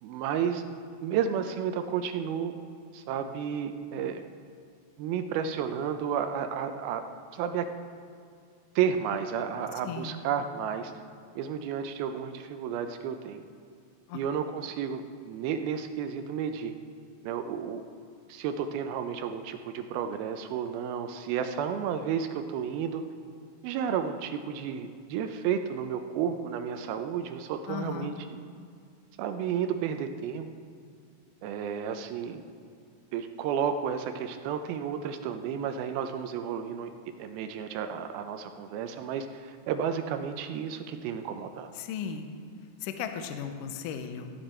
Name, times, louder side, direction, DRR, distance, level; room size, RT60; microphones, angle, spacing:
voice 1, 0.0-0.6 1.0-2.5 2.9-4.2 5.0-7.0 7.3-7.7 8.8-10.9 11.4-13.4 14.1-16.7 17.2-17.8 18.3-23.0 23.6-28.4 29.2-30.5 31.4-32.4 33.1-36.9 37.2-41.7, right 8 dB, 80° right, 7 dB, 2.2 m, -32 dB
voice 2, 9.8-10.2 14.1-14.2 27.7-28.1 41.8-42.3 42.8-44.3, left 7 dB, 85° left, 6 dB, 1.9 m, -36 dB
15.5 x 9.1 x 4.3 m, 2.3 s
omnidirectional pair, 4.8 m